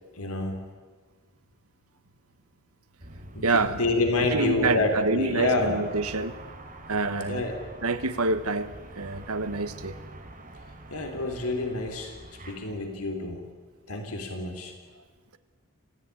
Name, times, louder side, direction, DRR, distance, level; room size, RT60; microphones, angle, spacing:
voice 1, 0.2-0.6 3.3-5.8 7.2-7.6 10.9-12.1 12.5-13.5 13.9-14.7, left 2 dB, 80° left, 4 dB, 3.7 m, -28 dB
sound 1, 3.0-12.5, right 1 dB, 40° right, 3.6 m, -45 dB
voice 2, 3.4-3.8 4.3-6.4 6.9-7.4 7.8-9.9, right 3 dB, 85° right, 10 dB, 1.4 m, -27 dB
27.0 x 16.0 x 9.8 m, 1.4 s
head